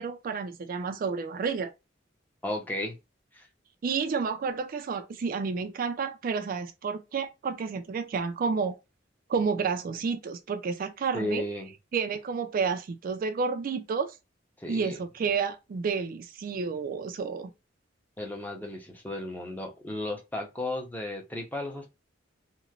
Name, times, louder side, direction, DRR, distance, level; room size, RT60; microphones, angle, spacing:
voice 1, 0.0-1.7 3.8-8.8 9.3-11.4 11.9-14.1 14.7-17.5, right 5 dB, 50° right, 0.3 m, -30 dB
voice 2, 2.4-2.9 3.3-3.5 11.1-11.7 14.6-15.0 18.2-21.9, left 1 dB, 10° left, 0.6 m, -34 dB
3.0 x 2.1 x 2.3 m
head